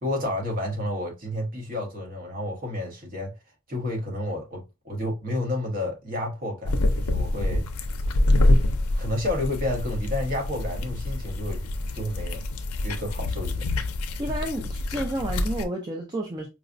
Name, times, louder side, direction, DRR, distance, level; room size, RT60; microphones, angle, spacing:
voice 1, 0.0-3.3 3.7-7.7 9.0-11.6 11.9-12.4 12.8-13.7, left 1 dB, 40° right, 1.0 m, -30 dB
sound 1, 6.7-15.7, left 1 dB, 85° left, 0.4 m, -26 dB
voice 2, 14.2-16.5, right 1 dB, 20° right, 0.4 m, -30 dB
4.7 x 2.1 x 2.5 m
head